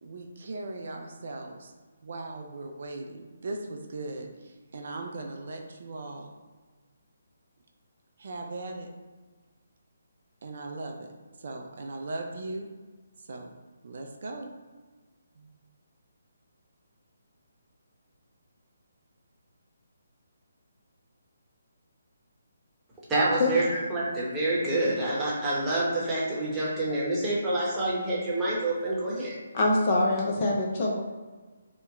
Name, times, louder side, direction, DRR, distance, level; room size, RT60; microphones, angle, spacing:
voice 1, 0.0-1.7 2.0-6.3 8.2-8.9 10.4-11.1 11.4-12.7 13.2-13.5 13.8-14.5 15.4-15.5, right 2 dB, 60° right, 2 dB, 0.4 m, -38 dB
voice 2, 23.1-29.3, right 1 dB, 10° right, -7 dB, 0.9 m, -27 dB
voice 3, 29.5-31.0, left 2 dB, 35° left, -2 dB, 0.6 m, -24 dB
2.9 x 2.1 x 3.5 m, 1.4 s
figure-of-eight pair, 150°, 0 cm